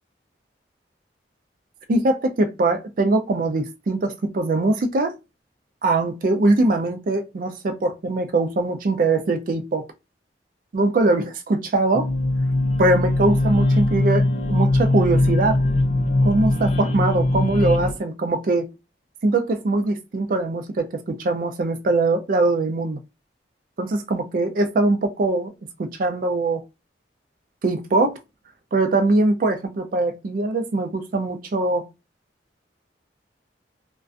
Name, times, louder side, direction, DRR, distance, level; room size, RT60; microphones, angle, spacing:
voice 1, 1.9-5.2 5.8-9.9 10.7-12.1 12.8-15.6 16.2-18.7 19.2-23.0 23.8-25.5 25.8-26.6 27.6-28.2 28.7-31.9, right 2 dB, 50° right, 0.4 m, -22 dB
sound 1, 11.9-17.9, left 2 dB, 40° left, 0.5 m, -21 dB
2.4 x 2.2 x 2.4 m
head